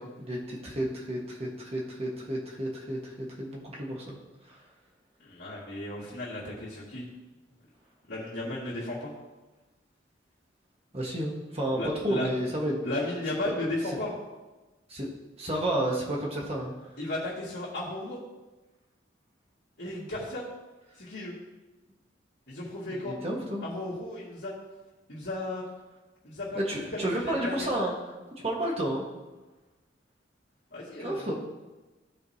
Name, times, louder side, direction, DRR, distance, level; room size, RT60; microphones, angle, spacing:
voice 1, 0.0-4.2 4.5-4.6 10.9-11.8 12.0-12.8 13.3-13.4 14.9-15.1 15.4-16.7 22.9-23.7 26.5-27.9 28.4-29.0 31.0-31.3, right 1 dB, 35° right, -2 dB, 1.5 m, -31 dB
voice 2, 5.2-7.1 8.1-9.1 11.7-12.3 12.8-14.1 17.0-18.2 19.8-20.4 21.0-21.3 22.5-23.2 23.6-24.5 25.1-25.6 26.2-27.7 30.7-31.3, left 2 dB, 60° left, -10 dB, 2.3 m, -35 dB
15.0 x 5.1 x 2.9 m, 1.1 s
head